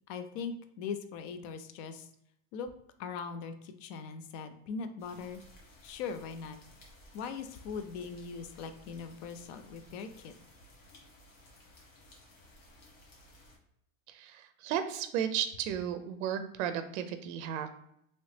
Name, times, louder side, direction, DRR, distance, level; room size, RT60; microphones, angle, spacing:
voice 1, 0.1-2.1 2.5-2.7 3.0-5.4 5.8-6.6 7.1-10.3, left 5 dB, 50° left, 9 dB, 0.5 m, -40 dB
sound 1, 5.0-13.6, left 1 dB, 75° left, 1.3 m, -57 dB
voice 2, 14.1-17.7, right 9 dB, 65° right, 9 dB, 0.5 m, -34 dB
3.0 x 2.8 x 3.2 m, 0.75 s
supercardioid pair, 145°, 40 cm